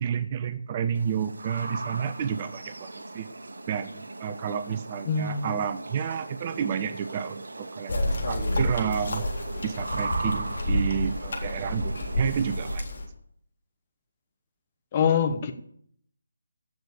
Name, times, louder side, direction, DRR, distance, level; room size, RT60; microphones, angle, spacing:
voice 1, 0.0-3.3 3.7-9.3 9.6-12.8, right 7 dB, 30° right, 12 dB, 0.6 m, -30 dB
sound 1, 0.9-12.8, right 2 dB, 70° right, 1.1 m, -39 dB
voice 2, 5.1-5.5 14.9-15.5, left 6 dB, 30° left, 6 dB, 1.2 m, -24 dB
sound 2, 7.9-13.0, left 1 dB, 60° left, 3.8 m, -29 dB
16.0 x 6.7 x 6.9 m, 0.67 s
figure-of-eight pair, 150°, 0 cm